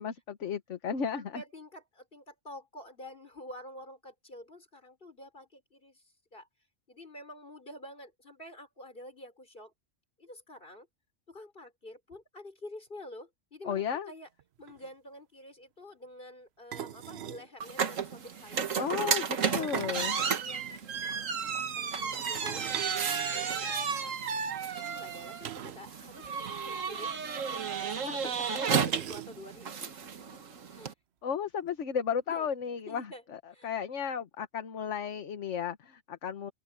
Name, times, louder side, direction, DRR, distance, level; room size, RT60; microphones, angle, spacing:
voice 1, 0.0-1.4 13.6-14.1 18.8-20.2 31.2-36.5, left 7 dB, 65° left, 1.5 m, -34 dB
voice 2, 1.1-6.5 6.9-9.7 10.2-10.9 11.3-14.3 14.6-18.7 18.9-19.1 19.4-20.7 21.0-24.1 24.8-27.2 27.5-29.9 30.7-30.9 32.3-32.5 32.9-33.2 33.5-33.7, left 1 dB, 45° left, 5.7 m, -48 dB
sound 1, 14.4-14.5 14.7-14.9 16.7-17.5 19.4-20.8 22.3-23.9 25.4-25.9 26.2-26.3 26.6-26.7 27.8-27.9 28.8-29.6, right 10 dB, 60° right, 0.9 m, -42 dB
sound 2, 17.6-30.9, right 6 dB, 80° right, 1.7 m, -33 dB
open air
omnidirectional pair, 1.3 m